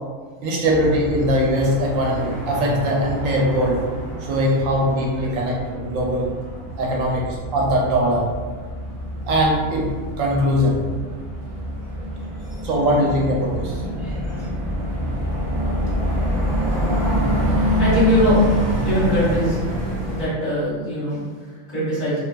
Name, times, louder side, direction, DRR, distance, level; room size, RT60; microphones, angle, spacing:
voice 1, 0.4-3.8 4.2-6.3 6.8-8.3 9.3-9.9 10.2-10.8 12.6-13.8, equal, 80° right, -2 dB, 1.0 m, -21 dB
sound 1, 0.7-20.3, equal, 50° right, 0.5 m, -26 dB
voice 2, 14.0-14.5 15.5-15.9 17.7-19.7 20.0-22.2, equal, 30° left, -10 dB, 1.4 m, -23 dB
2.6 x 2.3 x 2.3 m, 1.5 s
omnidirectional pair, 1.4 m